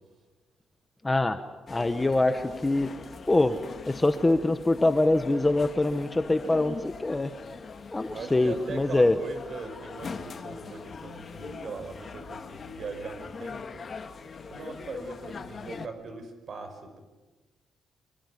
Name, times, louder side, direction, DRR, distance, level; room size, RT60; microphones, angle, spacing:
voice 1, 1.0-1.4 1.7-2.9 3.3-3.6 3.9-7.3 7.9-9.2, left 2 dB, 15° left, 9 dB, 1.1 m, -24 dB
sound 1, 1.7-15.9, left 5 dB, 35° left, 1.8 m, -42 dB
voice 2, 8.1-14.0 14.5-17.0, right 4 dB, 45° right, 8 dB, 5.2 m, -40 dB
25.0 x 23.0 x 9.8 m, 1.2 s
cardioid pair, 155°, 0 cm